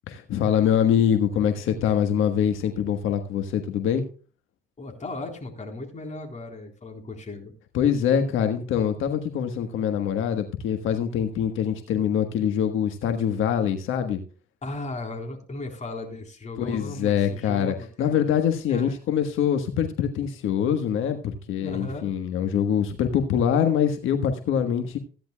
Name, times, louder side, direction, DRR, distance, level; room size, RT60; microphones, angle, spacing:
voice 1, 0.1-4.0 7.7-14.2 16.6-25.0, left 8 dB, 85° left, 6 dB, 1.4 m, -24 dB
voice 2, 4.8-7.5 14.6-18.2 18.7-19.0 21.6-22.1, left 2 dB, 35° left, 3 dB, 3.8 m, -36 dB
16.0 x 10.5 x 2.3 m, 0.38 s
cardioid pair, 90°, 20 cm